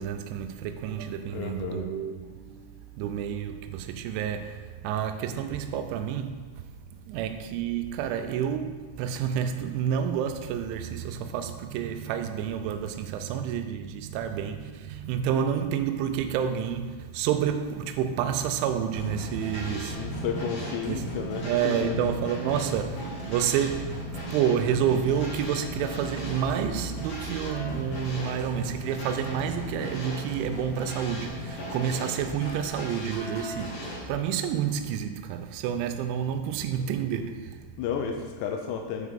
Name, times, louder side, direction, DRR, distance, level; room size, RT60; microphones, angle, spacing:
voice 1, 0.0-20.4 20.8-37.7, right 8 dB, 85° right, 2.9 m, -29 dB
voice 2, 1.3-2.0 19.9-22.1 36.8-36.9 37.8-39.1, left 7 dB, 85° left, 2.5 m, -32 dB
sound 1, 18.9-34.1, left 1 dB, 55° left, 3.3 m, -37 dB
9.4 x 8.4 x 3.7 m
omnidirectional pair, 5.6 m